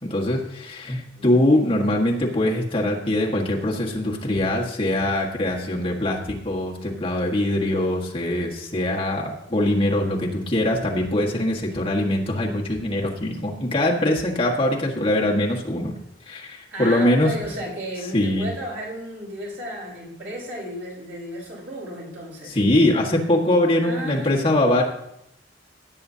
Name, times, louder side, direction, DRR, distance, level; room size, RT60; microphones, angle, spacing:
voice 1, 0.0-15.9 16.3-17.3 18.1-18.5 22.5-24.8, left 1 dB, 30° left, -2 dB, 1.6 m, -22 dB
voice 2, 1.1-1.8 16.7-22.6 23.8-24.5, equal, 75° right, -4 dB, 4.8 m, -34 dB
17.0 x 8.8 x 2.8 m, 0.78 s
head